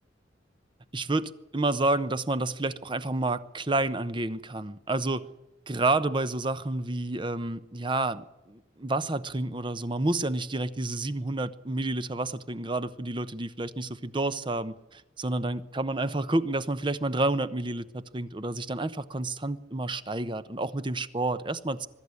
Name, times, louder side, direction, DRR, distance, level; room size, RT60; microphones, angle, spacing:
voice 1, 0.9-5.3 5.7-21.9, right 2 dB, 25° right, 0.9 m, -29 dB
22.0 x 13.5 x 9.7 m
head